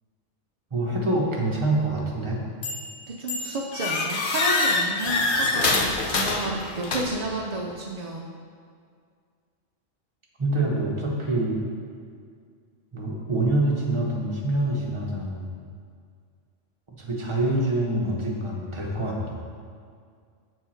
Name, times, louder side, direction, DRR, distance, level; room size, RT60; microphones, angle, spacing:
voice 1, 0.7-2.4 10.4-11.6 12.9-15.5 17.0-19.3, right 1 dB, 25° right, -3 dB, 0.9 m, -25 dB
sound 1, 2.6-3.0 3.3-7.3, left 3 dB, 50° left, 0.8 m, -25 dB
voice 2, 3.1-8.3, right 2 dB, 60° right, -1 dB, 0.4 m, -31 dB
7.1 x 4.6 x 4.4 m, 2.1 s
omnidirectional pair, 1.3 m